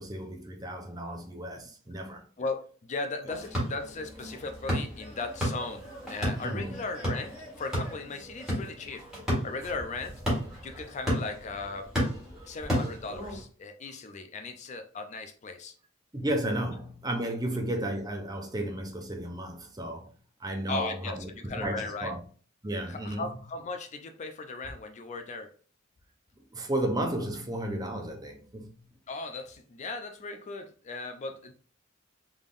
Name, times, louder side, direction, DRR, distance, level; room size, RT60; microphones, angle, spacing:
voice 1, 0.0-2.2 6.4-6.8 12.4-12.5 16.1-20.1 20.4-22.2 22.6-23.3 26.5-28.8, right 1 dB, 20° right, 0.6 m, -33 dB
voice 2, 2.4-9.0 9.4-10.2 10.6-11.9 12.5-15.7 20.7-22.1 22.9-25.5 29.1-31.5, left 3 dB, 35° left, 0.4 m, -37 dB
sound 1, 3.3-13.4, equal, ahead, 1.7 m, -33 dB
3.6 x 3.5 x 2.5 m
head